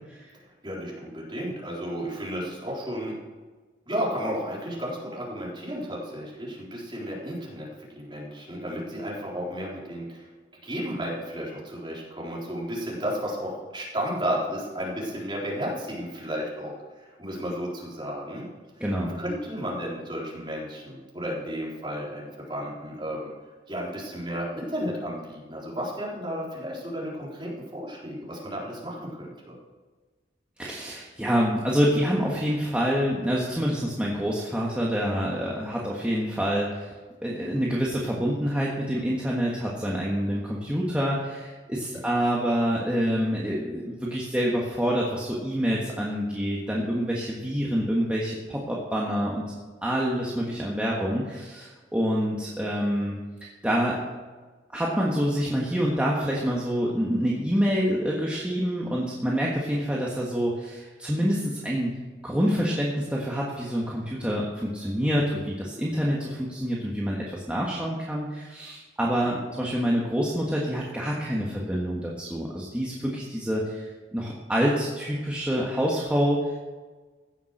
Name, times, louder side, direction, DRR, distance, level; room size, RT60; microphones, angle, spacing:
voice 1, 0.6-3.1 3.9-10.2 10.6-16.7 17.2-18.5 18.8-23.3 23.7-29.5 41.9-42.0 69.2-69.4, equal, 25° right, -5 dB, 3.9 m, -33 dB
voice 2, 18.8-19.1 30.6-36.9 37.2-49.4 49.8-53.1 53.6-54.0 54.7-62.0 62.2-73.8 74.1-76.4, equal, 5° right, -4 dB, 1.5 m, -27 dB
16.0 x 7.2 x 6.6 m, 1.3 s
head